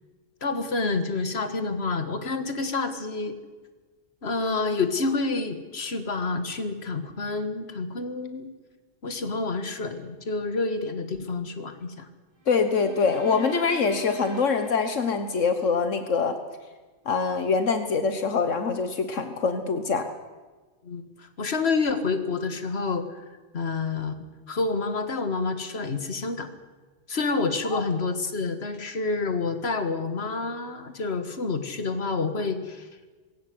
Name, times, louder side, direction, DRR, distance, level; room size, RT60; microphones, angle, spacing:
voice 1, 0.4-3.4 4.2-8.5 9.0-12.1 20.8-23.2 23.5-24.2 24.5-26.5 27.1-32.9, left 3 dB, 55° left, 9 dB, 2.1 m, -28 dB
sound 1, 12.4-15.8, equal, 20° left, 5.1 m, -42 dB
voice 2, 12.5-16.3 17.0-20.1 27.6-27.8, left 5 dB, 80° left, 8 dB, 1.7 m, -24 dB
20.0 x 17.0 x 9.6 m, 1.3 s
omnidirectional pair, 1.3 m